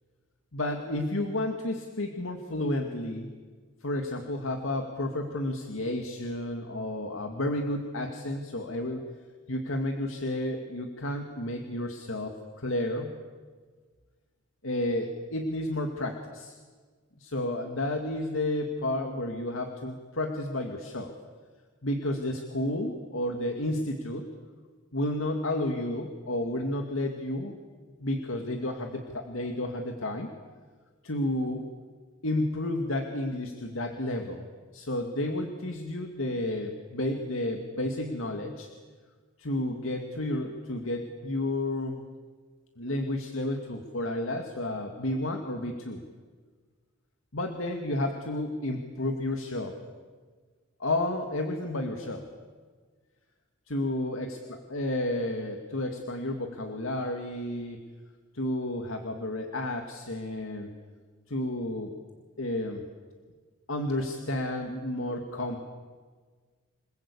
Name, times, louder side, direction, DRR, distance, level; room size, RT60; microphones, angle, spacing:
voice 1, 0.5-3.3 3.8-9.0 9.5-13.1 14.6-16.6 17.2-21.2 21.8-24.3 24.9-27.6 28.0-30.3 31.0-31.7 32.2-34.5 34.7-38.7 39.4-42.0 42.8-46.0 47.3-49.8 50.8-52.2 53.7-54.3 54.7-57.8 58.3-60.7 61.3-62.0 62.4-62.9 63.7-65.6, left 1 dB, 85° left, 4 dB, 2.2 m, -31 dB
28.5 x 21.0 x 8.4 m, 1.5 s
head